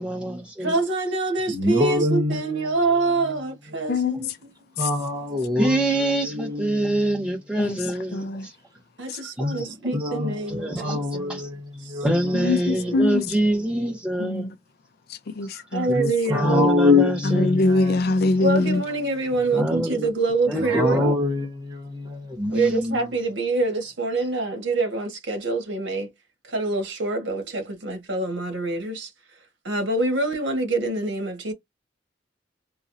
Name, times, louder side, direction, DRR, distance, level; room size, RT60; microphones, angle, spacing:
voice 1, 0.0-0.8 5.6-8.5 9.6-9.8 10.4-11.0 11.3-11.5 12.0-14.5 16.3-17.6 19.5-20.1 20.5-21.2 22.4-22.7, right 1 dB, 5° right, 1.4 m, -25 dB
voice 2, 0.6-4.5 9.0-11.4 11.8-12.0 12.5-12.6 15.7-16.8 18.4-21.1 22.5-26.1 26.4-29.1 29.6-31.5, right 3 dB, 70° right, 1.5 m, -26 dB
voice 3, 1.5-2.4 4.8-5.7 9.4-9.6 10.0-10.3 10.8-11.5 11.9-12.1 15.9-17.8 20.7-22.8, left 3 dB, 20° right, 1.1 m, -23 dB
voice 4, 8.1-8.5 12.3-13.2 14.2-14.5 15.1-15.9 17.2-18.8, left 2 dB, 60° left, 0.4 m, -23 dB
3.9 x 2.4 x 2.7 m
head